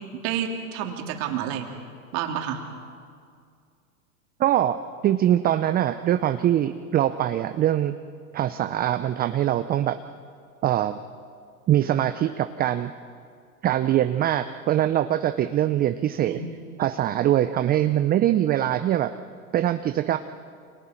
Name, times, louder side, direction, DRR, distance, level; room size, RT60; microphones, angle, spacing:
voice 1, 0.2-1.7 2.1-2.6 14.3-14.4 16.2-16.5, right 9 dB, 50° right, 3 dB, 3.2 m, -29 dB
voice 2, 4.4-4.8 5.0-7.9 8.3-10.0 10.6-11.0 11.7-12.9 13.6-16.4 16.8-19.1 19.5-20.2, right 12 dB, 20° right, 10 dB, 0.6 m, -23 dB
29.0 x 26.0 x 4.5 m, 2.2 s
hypercardioid pair, 105°, 43 cm